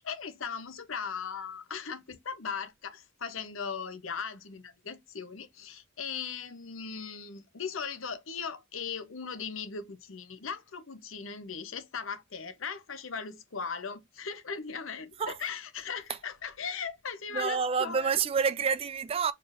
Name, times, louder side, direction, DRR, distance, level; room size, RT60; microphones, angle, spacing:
voice 1, 0.0-18.1, left 6 dB, 70° left, 0.9 m, -38 dB
voice 2, 17.3-19.3, right 6 dB, 30° right, 0.3 m, -28 dB
4.4 x 3.3 x 2.5 m
head